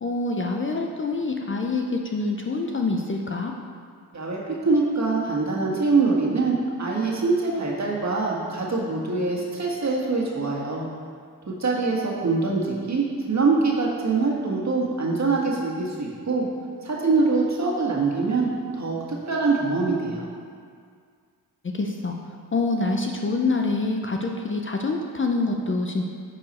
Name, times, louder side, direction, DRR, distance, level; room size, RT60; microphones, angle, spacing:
voice 1, 0.0-3.5 21.6-26.1, left 3 dB, 30° left, 1 dB, 0.6 m, -26 dB
voice 2, 4.1-10.9 11.5-16.5 16.8-18.5 18.7-20.3, right 3 dB, 40° right, -3 dB, 1.7 m, -24 dB
9.7 x 4.7 x 4.2 m, 2.1 s
cardioid pair, 85°, 41 cm